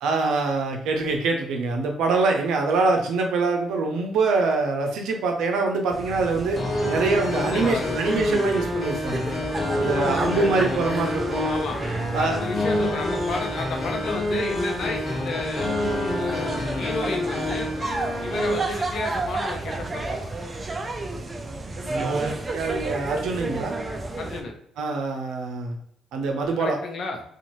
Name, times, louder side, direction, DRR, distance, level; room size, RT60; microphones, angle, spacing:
voice 1, 0.0-6.6 6.9-9.3 9.7-11.6 12.1-12.4 21.9-23.8 24.8-25.7 26.1-26.8, right 3 dB, 85° right, 3 dB, 0.6 m, -24 dB
sound 1, 5.9-24.4, right 2 dB, 30° right, 0.5 m, -32 dB
sound 2, 6.6-18.5, left 1 dB, 30° left, 1.1 m, -27 dB
voice 2, 7.3-8.1 9.9-10.5 11.4-11.8 12.1-15.7 16.1-17.7 18.2-20.3 24.2-24.5 26.6-27.2, left 3 dB, 60° left, 3 dB, 0.7 m, -32 dB
2.6 x 2.4 x 3.0 m, 0.70 s
cardioid pair, 90°, 0 cm